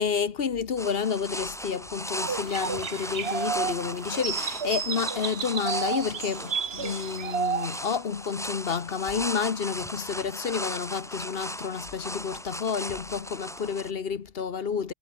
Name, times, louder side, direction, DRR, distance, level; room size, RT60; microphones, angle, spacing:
voice 1, 0.0-14.9, left 6 dB, 50° left, 1.2 m, -30 dB
sound 1, 0.8-13.9, equal, ahead, 2.7 m, -37 dB
sound 2, 2.1-7.8, right 6 dB, 55° right, 1.5 m, -31 dB
omnidirectional pair, 1.3 m